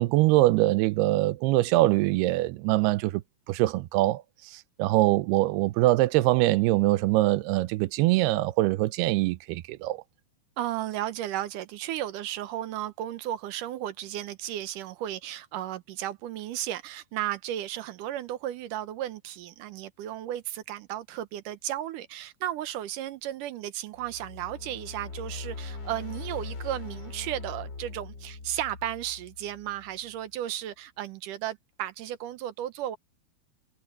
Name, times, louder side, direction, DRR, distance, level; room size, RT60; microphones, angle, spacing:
voice 1, 0.0-3.2 3.5-4.2 4.5-10.0, right 18 dB, 90° right, 2.7 m, -23 dB
voice 2, 10.6-33.0, right 12 dB, 70° right, 2.1 m, -34 dB
sound 1, 23.9-30.1, left 3 dB, 30° left, 3.2 m, -41 dB
omnidirectional pair, 4.5 m